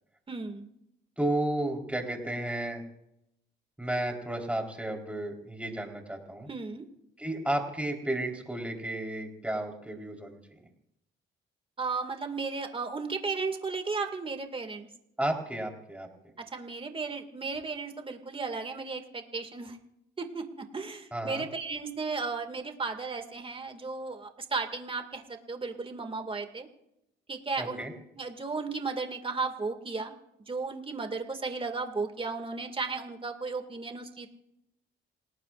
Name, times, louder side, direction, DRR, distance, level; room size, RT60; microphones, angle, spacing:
voice 1, 0.3-0.7 6.5-6.8 11.8-14.9 16.5-19.8 20.2-26.7 27.3-27.8 28.2-30.1 30.5-34.3, right 4 dB, 25° right, 5 dB, 2.2 m, -35 dB
voice 2, 1.2-2.8 3.8-6.5 7.2-10.6 15.2-16.1 21.1-21.4 27.6-27.9, right 1 dB, 5° right, 1 dB, 3.9 m, -33 dB
28.0 x 19.0 x 2.5 m, 0.82 s
cardioid pair, 90°, 20 cm